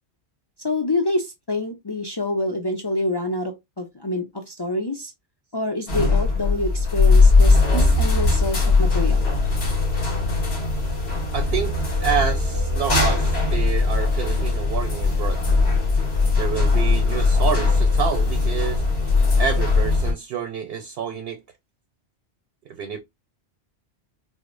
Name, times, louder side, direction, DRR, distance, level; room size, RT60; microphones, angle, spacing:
voice 1, 0.6-5.1 5.5-9.3, left 2 dB, 40° left, 0.3 m, -26 dB
sound 1, 5.9-20.1, left 3 dB, 65° left, 1.5 m, -19 dB
voice 2, 11.3-11.7 12.0-15.4 16.3-18.8 19.4-21.4 22.8-23.0, right 7 dB, 65° right, 0.8 m, -28 dB
4.9 x 2.0 x 2.5 m
omnidirectional pair, 1.2 m